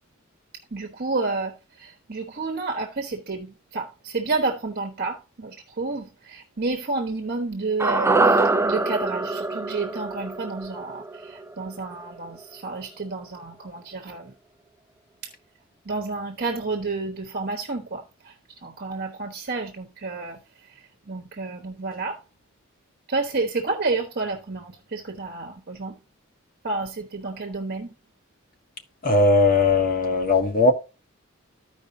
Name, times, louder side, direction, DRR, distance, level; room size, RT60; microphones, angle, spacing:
voice 1, 0.7-14.3 15.8-22.2 23.1-26.0 26.6-27.9, right 3 dB, 45° right, 1.1 m, -30 dB
sound 1, 7.8-12.1 12.4-12.5, right 3 dB, 10° right, 0.4 m, -24 dB
voice 2, 29.0-30.7, left 3 dB, 40° left, 1.4 m, -18 dB
14.0 x 5.0 x 2.6 m
head